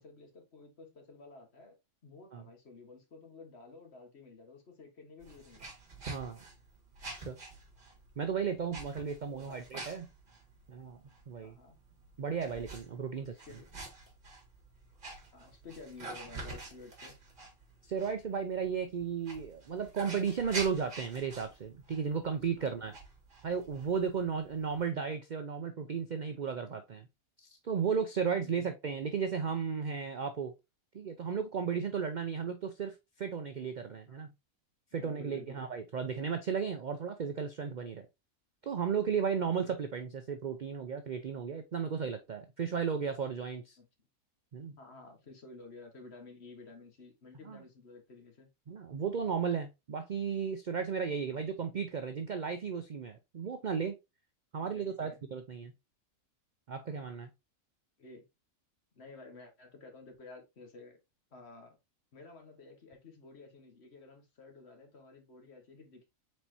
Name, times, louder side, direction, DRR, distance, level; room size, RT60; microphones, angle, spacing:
voice 1, 0.0-1.7 2.0-5.6 9.2-9.6 11.4-11.8 13.1-13.7 15.3-17.2 22.6-23.0 28.4-28.7 34.1-34.2 34.9-35.6 39.4-39.8 43.8-43.9 44.8-48.5 51.2-51.5 54.6-55.2 58.0-58.3 58.9-61.0 61.3-61.8 62.1-66.1, left 3 dB, 50° left, 1.5 m, -53 dB
sound 1, 5.2-24.9, right 2 dB, 35° right, 1.7 m, -48 dB
voice 2, 6.1-6.4 7.1-7.4 8.2-10.1 10.7-11.0 11.3-11.6 12.2-13.3 17.9-23.0 23.4-27.1 27.4-30.5 30.9-34.3 34.9-38.1 38.6-43.8 44.5-44.8 47.5-47.6 48.7-54.0 54.5-55.7 56.7-57.3, right 6 dB, 60° right, 0.4 m, -34 dB
4.7 x 4.2 x 2.7 m
omnidirectional pair, 1.5 m